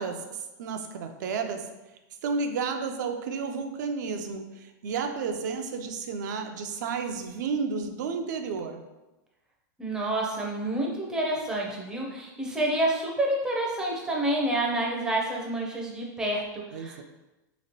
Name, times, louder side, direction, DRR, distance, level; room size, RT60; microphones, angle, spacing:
voice 1, 0.0-1.7 2.2-8.8 16.7-17.0, right 5 dB, 65° right, 6 dB, 0.4 m, -32 dB
voice 2, 9.8-17.0, right 1 dB, 5° right, -2 dB, 0.5 m, -28 dB
2.9 x 2.8 x 2.8 m, 1.0 s
supercardioid pair, 145°, 10 cm